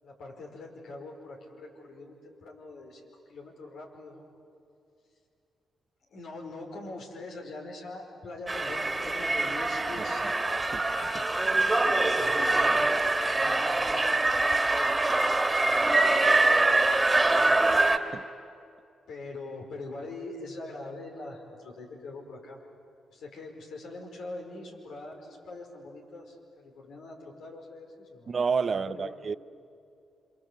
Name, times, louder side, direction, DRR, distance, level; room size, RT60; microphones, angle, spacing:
voice 1, 0.0-4.3 6.1-10.3 12.1-12.9 13.3-16.6 17.2-17.6 19.1-22.6 23.1-28.3 28.6-29.2, left 2 dB, 80° left, 5.1 m, -43 dB
sound 1, 8.5-18.0, right 2 dB, 20° right, 2.2 m, -24 dB
voice 2, 10.0-10.3 10.7-10.8 11.1-11.2 17.4-17.5 18.1-18.3 28.3-29.4, right 5 dB, 50° right, 0.7 m, -30 dB
27.5 x 26.5 x 8.1 m
supercardioid pair, 55°, 0 cm